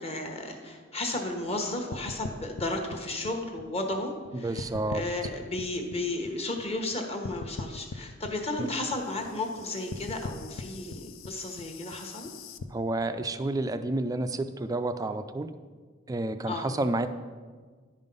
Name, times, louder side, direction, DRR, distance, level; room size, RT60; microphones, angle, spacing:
voice 1, 0.0-12.3 16.5-16.7, left 2 dB, 30° left, 4 dB, 1.1 m, -34 dB
sound 1, 1.9-4.3 4.6-6.9 7.2-12.6, left 4 dB, 90° left, 0.5 m, -41 dB
voice 2, 4.3-5.0 8.6-8.7 12.7-15.5 16.1-17.1, right 2 dB, 20° right, 10 dB, 0.3 m, -30 dB
10.5 x 5.4 x 5.3 m, 1.5 s
head